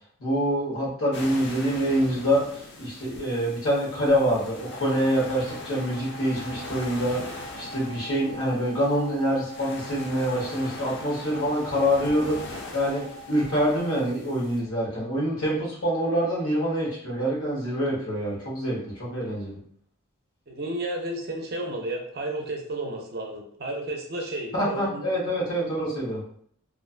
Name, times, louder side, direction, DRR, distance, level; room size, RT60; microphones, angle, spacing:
voice 1, 0.2-19.6 24.5-26.2, equal, 75° left, -5 dB, 1.1 m, -26 dB
sound 1, 1.1-14.6, left 2 dB, 55° left, 0.5 m, -41 dB
sound 2, 4.8-13.9, right 4 dB, 5° left, 0.7 m, -44 dB
voice 2, 20.5-25.1, right 1 dB, 45° right, 1 dB, 0.5 m, -32 dB
2.4 x 2.3 x 2.4 m, 0.62 s
head